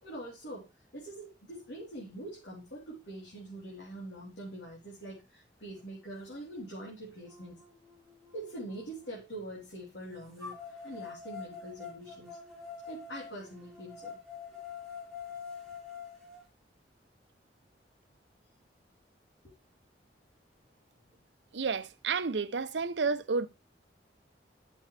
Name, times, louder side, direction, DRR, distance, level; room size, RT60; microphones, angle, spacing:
voice 1, 0.0-7.6 8.3-12.4 12.9-14.2 19.4-19.5, right 1 dB, 80° left, 3.7 m, -44 dB
sound 1, 6.6-6.7 7.3-9.2 10.4-16.4, left 6 dB, 5° left, 3.2 m, -46 dB
voice 2, 21.5-23.5, right 4 dB, 80° right, 0.7 m, -31 dB
11.5 x 7.0 x 3.3 m
head